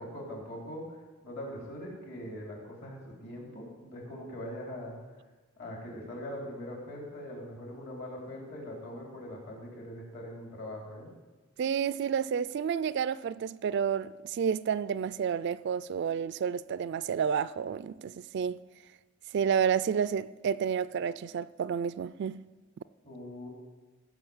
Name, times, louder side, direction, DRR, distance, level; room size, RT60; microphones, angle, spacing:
voice 1, 0.0-5.0 5.6-11.1 23.0-23.5, left 1 dB, 50° left, 3.6 m, -42 dB
voice 2, 11.6-18.6 19.3-22.4, right 7 dB, 60° right, 0.3 m, -30 dB
16.0 x 5.9 x 7.1 m
head